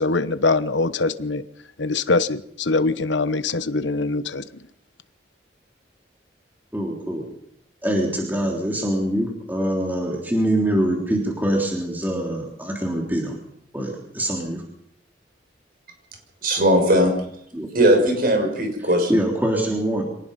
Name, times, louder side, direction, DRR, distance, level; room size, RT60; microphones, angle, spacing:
voice 1, 0.0-1.4 1.8-4.5, left 3 dB, 80° left, 13 dB, 1.1 m, -23 dB
voice 2, 6.7-7.2 7.8-13.3 13.7-14.6 17.5-17.7 19.1-20.0, right 1 dB, 10° right, 0 dB, 3.4 m, -24 dB
voice 3, 16.4-17.1 17.7-19.2, equal, 50° right, 3 dB, 6.5 m, -18 dB
25.5 x 18.5 x 5.6 m, 0.72 s
head